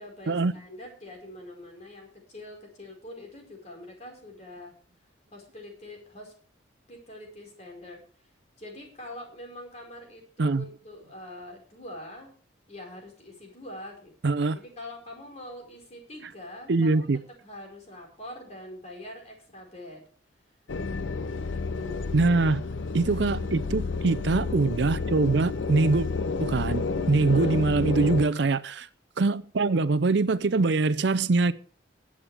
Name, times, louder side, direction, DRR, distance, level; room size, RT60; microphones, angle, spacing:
voice 1, 0.0-4.7 5.3-6.3 6.9-8.0 8.6-12.3 12.7-17.1 17.4-20.0 21.5-22.2 23.1-23.3 27.2-27.6, left 1 dB, 35° left, 4.9 m, -44 dB
voice 2, 14.2-14.6 16.7-17.2 22.1-22.6 22.9-26.1 26.4-28.9 29.2-31.5, right 3 dB, 65° right, 0.6 m, -23 dB
sound 1, 20.7-28.3, left 4 dB, 85° left, 0.6 m, -30 dB
20.5 x 8.6 x 3.5 m
head